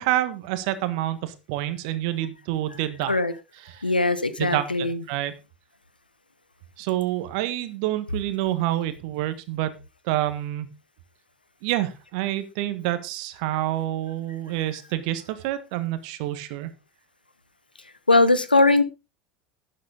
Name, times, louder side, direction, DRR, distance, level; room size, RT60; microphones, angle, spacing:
voice 1, 0.0-3.1 3.7-3.8 4.4-5.3 6.8-9.7 10.1-10.7 11.6-16.7, right 14 dB, 55° right, 12 dB, 1.5 m, -27 dB
voice 2, 3.8-5.0 18.1-18.8, left 2 dB, 85° left, 14 dB, 0.9 m, -20 dB
12.0 x 9.7 x 3.7 m, 0.28 s
figure-of-eight pair, 75°, 5 cm